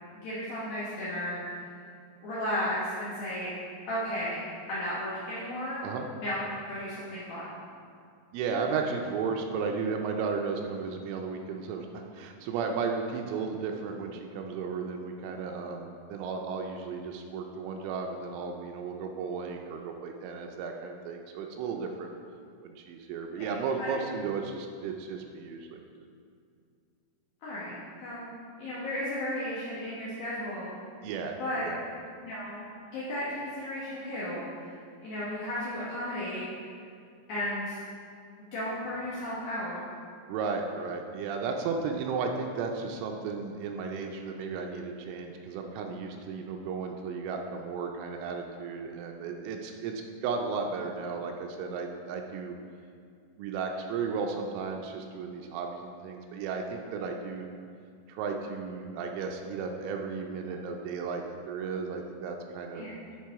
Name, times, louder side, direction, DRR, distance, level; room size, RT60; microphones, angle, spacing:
voice 1, 0.1-1.4 2.2-3.5 3.9-4.4 4.7-5.8 6.2-6.4 6.7-7.4 23.5-23.9 27.4-28.3 28.6-30.7 31.4-31.7 32.2-32.6 32.9-34.7 35.0-36.4 37.3-37.8 38.5-39.8 62.7-62.9, left 1 dB, 75° left, -9 dB, 2.2 m, -34 dB
voice 2, 8.3-22.1 22.6-25.8 31.0-31.4 31.6-31.8 40.3-52.5 53.4-57.5 58.1-62.9, right 5 dB, 85° right, 3 dB, 3.0 m, -34 dB
10.5 x 4.1 x 4.6 m, 2.3 s
omnidirectional pair, 5.8 m